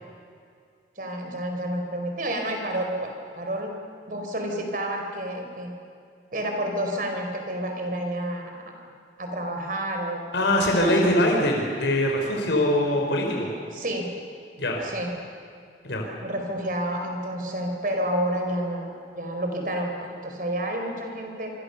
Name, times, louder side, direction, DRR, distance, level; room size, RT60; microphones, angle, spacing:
voice 1, 1.0-3.7 4.1-5.7 6.3-8.7 9.2-10.5 10.8-11.2 13.7-14.1 14.8-15.1 16.2-21.5, right 1 dB, 50° right, 3 dB, 4.6 m, -30 dB
voice 2, 10.3-13.5 14.6-14.8 15.8-16.0, left 1 dB, 85° left, 1 dB, 4.2 m, -22 dB
26.5 x 25.0 x 7.0 m, 2.3 s
head